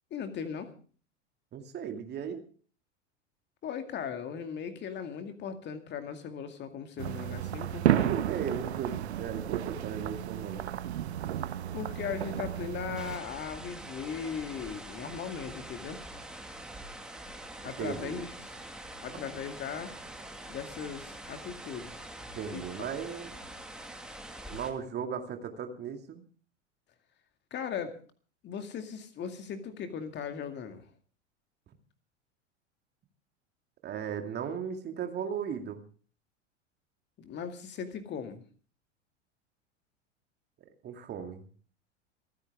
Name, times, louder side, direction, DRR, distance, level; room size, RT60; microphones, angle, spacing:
voice 1, 0.1-0.7 3.6-8.1 11.7-16.0 17.6-18.3 19.0-19.9 20.5-22.0 22.5-22.9 27.5-28.0 28.4-30.8 37.2-38.4, left 7 dB, 30° left, 7 dB, 2.2 m, -38 dB
voice 2, 1.5-2.4 8.0-10.7 17.8-18.2 22.3-23.3 24.5-26.2 33.8-35.8 40.8-41.4, right 7 dB, 30° right, 5 dB, 2.3 m, -36 dB
sound 1, 7.0-13.2, right 11 dB, 60° right, 1.0 m, -32 dB
sound 2, 13.0-24.7, right 1 dB, ahead, 2.0 m, -45 dB
28.0 x 9.9 x 3.6 m, 0.42 s
figure-of-eight pair, 85°, 36 cm